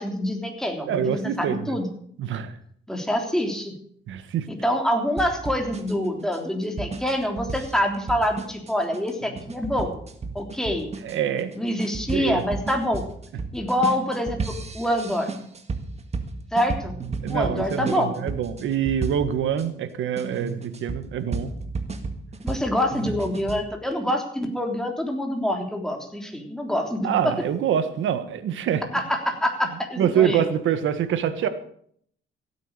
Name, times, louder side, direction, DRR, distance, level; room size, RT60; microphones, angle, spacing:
voice 1, 0.0-1.9 2.9-3.7 4.5-10.0 10.3-10.9 11.5-13.0 13.5-15.3 16.5-17.0 17.3-18.3 22.4-27.3 28.9-30.5, left 1 dB, 5° left, 2 dB, 3.4 m, -26 dB
voice 2, 0.9-1.8 2.2-2.5 4.1-4.5 11.0-11.5 12.1-12.4 17.2-21.5 27.0-28.8 30.0-31.5, right 9 dB, 75° right, 11 dB, 1.5 m, -25 dB
sound 1, 5.2-19.6 20.2-23.6, right 4 dB, 35° right, 1.8 m, -33 dB
15.5 x 9.0 x 6.7 m, 0.65 s
cardioid pair, 90°, 20 cm